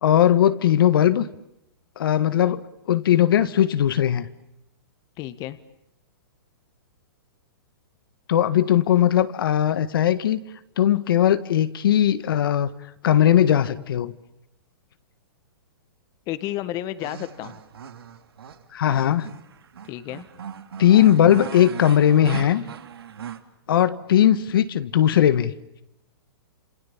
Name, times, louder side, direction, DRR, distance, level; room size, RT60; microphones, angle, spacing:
voice 1, 0.0-1.3 2.0-4.3 8.3-10.5 10.8-12.7 13.0-14.1 18.7-19.3 20.8-22.6 23.7-25.5, left 10 dB, 70° left, 12 dB, 1.6 m, -19 dB
voice 2, 5.2-5.6 16.3-17.6 19.8-20.2, left 14 dB, 30° left, 13 dB, 1.5 m, -31 dB
sound 1, 17.0-23.4, right 8 dB, 85° right, 2.9 m, -38 dB
29.5 x 27.5 x 7.3 m, 0.84 s
hypercardioid pair, 150°, 12 cm